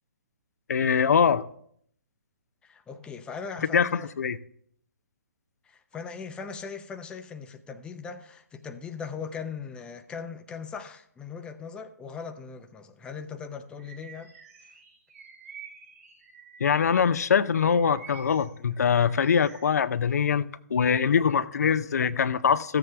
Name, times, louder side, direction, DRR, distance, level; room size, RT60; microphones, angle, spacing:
voice 1, 0.7-1.5 3.7-4.4 16.6-20.4 20.7-22.8, left 7 dB, 75° left, 0.5 m, -23 dB
voice 2, 2.6-4.1 5.6-14.3 14.6-14.7, left 6 dB, 10° left, 0.6 m, -39 dB
Bird vocalization bird call bird song, 13.8-17.1 17.5-19.7, right 6 dB, 70° right, 3.1 m, -49 dB
14.0 x 7.7 x 3.4 m
hypercardioid pair, 135°, 9 cm